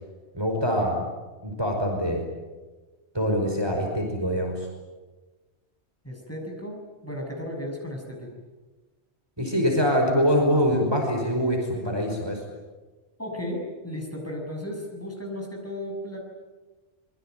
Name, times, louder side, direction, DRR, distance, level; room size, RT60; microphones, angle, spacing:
voice 1, 0.3-1.0 1.4-2.2 3.1-4.5 9.4-12.4, equal, 20° right, 1 dB, 5.3 m, -24 dB
voice 2, 6.0-8.3 13.2-16.2, left 1 dB, 10° left, 1 dB, 6.5 m, -35 dB
26.0 x 23.5 x 9.2 m, 1.2 s
omnidirectional pair, 1.2 m